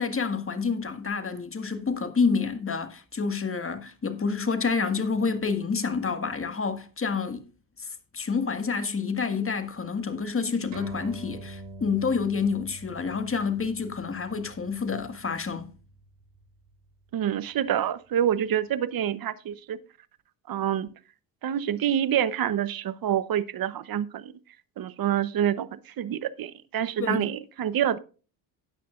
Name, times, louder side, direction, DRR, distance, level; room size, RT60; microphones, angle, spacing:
voice 1, 0.0-7.5 7.8-15.7 27.0-27.3, left 5 dB, 25° left, 1.8 m, -28 dB
sound 1, 10.7-17.6, right 2 dB, 65° right, 3.9 m, -46 dB
voice 2, 17.1-19.8 20.5-20.9 21.4-24.3 24.8-28.0, right 10 dB, 50° right, 0.9 m, -27 dB
13.5 x 9.3 x 2.5 m
supercardioid pair, 65°, 47 cm